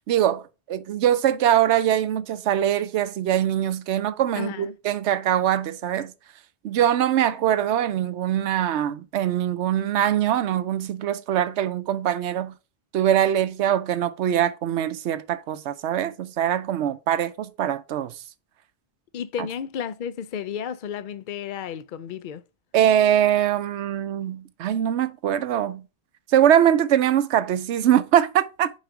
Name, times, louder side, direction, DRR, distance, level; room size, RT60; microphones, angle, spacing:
voice 1, 0.1-6.1 6.6-12.5 12.9-18.2 22.7-25.8 26.3-28.7, right 10 dB, 90° right, 0.9 m, -22 dB
voice 2, 4.4-4.8 19.1-22.4, left 8 dB, 55° left, 0.7 m, -32 dB
6.3 x 4.8 x 4.8 m
omnidirectional pair, 1.1 m